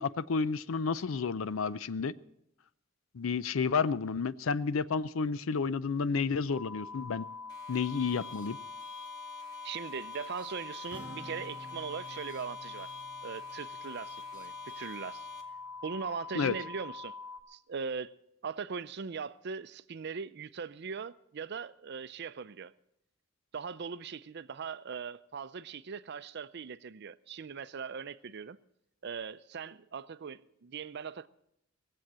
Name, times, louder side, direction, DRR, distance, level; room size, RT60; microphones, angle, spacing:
voice 1, 0.0-2.1 3.1-7.3 7.7-8.6 16.3-16.5, left 5 dB, 75° left, 0.5 m, -31 dB
sound 1, 6.5-17.4, left 4 dB, 60° left, 1.2 m, -44 dB
sound 2, 7.5-15.4, left 4 dB, 20° left, 2.0 m, -53 dB
voice 2, 9.6-12.9 13.2-15.3 15.8-17.1 17.5-18.1 18.4-22.7 23.5-28.6 29.0-31.3, right 6 dB, 55° right, 0.5 m, -40 dB
Acoustic guitar, 10.9-14.6, equal, 5° right, 2.6 m, -51 dB
18.5 x 7.8 x 7.4 m
head